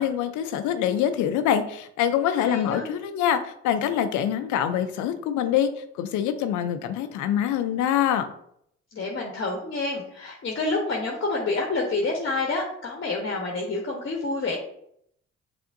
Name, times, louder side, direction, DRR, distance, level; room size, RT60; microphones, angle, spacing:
voice 1, 0.0-8.3, left 9 dB, 80° left, 9 dB, 0.6 m, -25 dB
voice 2, 2.4-2.9 8.9-14.6, left 3 dB, 45° left, 0 dB, 1.0 m, -28 dB
6.0 x 3.4 x 2.6 m, 0.70 s
supercardioid pair, 55°, 30 cm